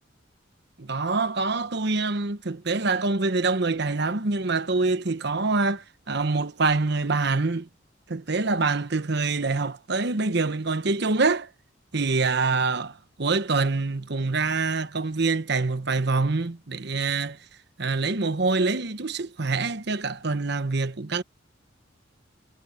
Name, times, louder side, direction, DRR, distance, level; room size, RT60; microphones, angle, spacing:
voice 1, 0.8-7.7 8.1-11.5 11.9-17.4 17.8-21.2, right 3 dB, 60° right, 1.0 m, -25 dB
head